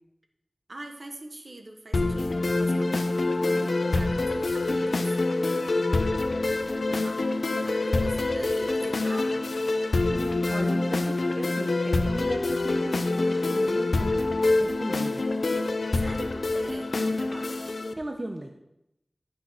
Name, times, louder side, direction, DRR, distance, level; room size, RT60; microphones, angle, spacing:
voice 1, 0.7-5.3 7.0-9.3 15.9-17.5, right 2 dB, 65° right, 4 dB, 1.5 m, -42 dB
sound 1, 1.9-17.9, left 2 dB, 85° left, 0.7 m, -26 dB
voice 2, 5.7-6.1 6.9-7.0 10.1-15.2 18.0-18.5, right 1 dB, 40° right, 3 dB, 1.0 m, -37 dB
12.0 x 6.4 x 5.9 m, 0.85 s
wide cardioid pair, 55°, 0 cm